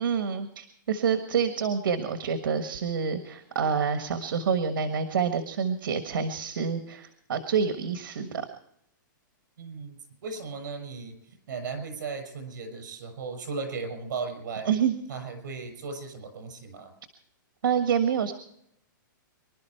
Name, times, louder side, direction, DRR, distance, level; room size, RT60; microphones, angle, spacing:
voice 1, 0.0-8.5 14.7-14.9 17.6-18.3, right 6 dB, 75° right, 8 dB, 1.4 m, -27 dB
voice 2, 9.6-14.7 15.1-16.9, right 4 dB, 60° right, 7 dB, 6.1 m, -36 dB
25.0 x 12.0 x 4.5 m, 0.74 s
hypercardioid pair, 175°, 11 cm